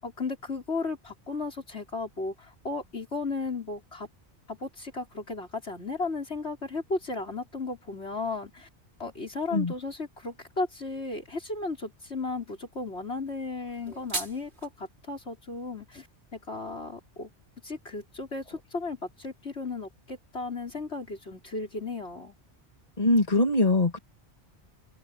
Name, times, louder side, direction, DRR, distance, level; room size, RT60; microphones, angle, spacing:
voice 1, 0.0-4.1 4.5-8.7 9.0-16.1 16.3-17.3 17.6-22.3, left 3 dB, 75° left, 5.9 m, -35 dB
sound 1, 13.7-14.7, right 2 dB, 75° right, 3.3 m, -36 dB
voice 2, 23.0-24.0, left 2 dB, 35° left, 2.4 m, -22 dB
open air
omnidirectional pair, 1.1 m